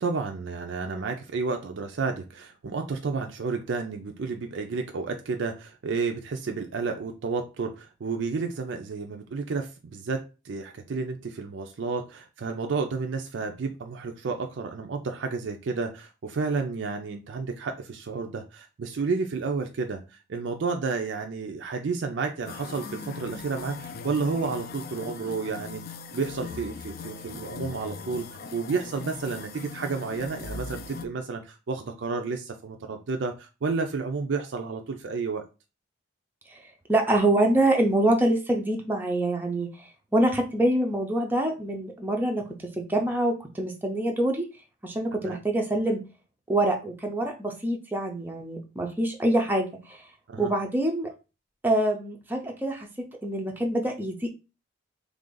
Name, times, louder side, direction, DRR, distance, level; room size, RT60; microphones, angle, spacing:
voice 1, 0.0-20.0 20.3-25.8 26.1-28.2 28.5-35.4 45.2-45.4 50.3-50.5, right 4 dB, 65° right, 4 dB, 0.4 m, -31 dB
sound 1, 22.5-31.1, left 5 dB, 50° left, 0.4 m, -39 dB
voice 2, 36.9-44.5 44.8-46.0 46.5-50.0 50.4-51.1 51.6-54.3, right 1 dB, 10° right, 2 dB, 0.5 m, -25 dB
3.3 x 2.5 x 3.7 m, 0.30 s
head